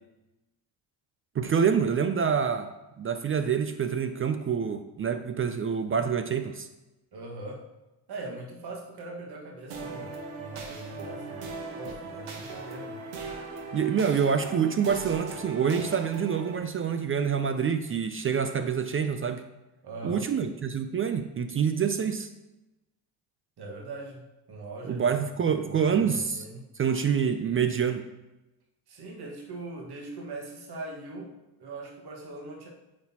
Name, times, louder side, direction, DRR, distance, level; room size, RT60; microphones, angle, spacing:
voice 1, 1.4-2.7 3.0-6.7 13.7-19.4 20.0-22.3 24.9-26.4 26.8-28.1, right 7 dB, 30° right, 9 dB, 0.4 m, -26 dB
voice 2, 7.1-7.7 8.1-13.0 19.8-20.3 23.6-24.2 24.5-25.1 25.6-26.7 28.9-32.7, right 2 dB, 50° right, -1 dB, 1.6 m, -41 dB
sound 1, 9.7-16.6, right 3 dB, 75° right, 1.2 m, -39 dB
8.6 x 4.1 x 2.8 m, 1.0 s
supercardioid pair, 65°, 49 cm